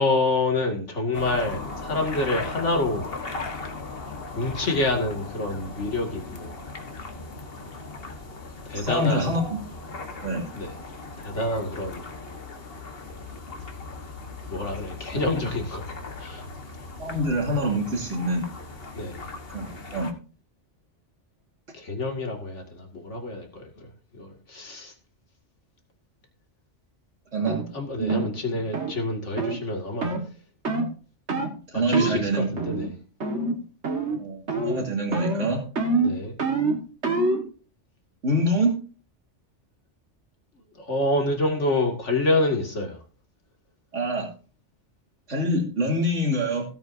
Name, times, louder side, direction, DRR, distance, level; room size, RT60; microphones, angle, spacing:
voice 1, 0.0-3.1 4.3-6.5 8.7-9.4 10.5-10.8 11.2-12.1 14.5-16.4 19.0-19.3 21.7-24.9 27.7-30.1 31.7-32.9 36.0-36.3 40.8-43.0, left 2 dB, 75° left, 2.6 m, -27 dB
sound 1, 1.1-20.1, left 3 dB, 55° left, 1.7 m, -38 dB
voice 2, 8.7-9.6 10.2-10.4 15.1-15.2 17.0-18.5 19.5-20.1 27.3-27.6 28.0-28.3 28.5-28.6 31.7-32.5 34.2-35.6 38.2-38.8 43.9-44.3 45.3-46.6, right 1 dB, 85° right, 3.2 m, -25 dB
sound 2, 27.5-27.6 28.1-28.3 28.7-28.9 29.4-29.6 30.0-30.2 30.7-30.9 31.3-31.5 31.9-32.2 32.6-32.9 33.2-33.6 33.8-34.2 34.5-34.8 35.1-37.5, right 3 dB, 70° right, 2.1 m, -26 dB
16.5 x 8.6 x 2.7 m
omnidirectional pair, 1.2 m